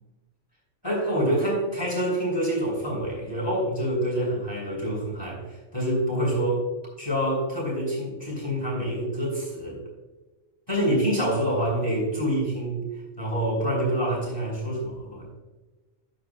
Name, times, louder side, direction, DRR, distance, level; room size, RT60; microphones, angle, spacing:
voice 1, 0.8-6.7 7.0-9.8 10.7-12.8 13.2-15.3, right 1 dB, 20° left, -4 dB, 3.0 m, -26 dB
12.0 x 7.9 x 2.2 m, 1.2 s
omnidirectional pair, 1.3 m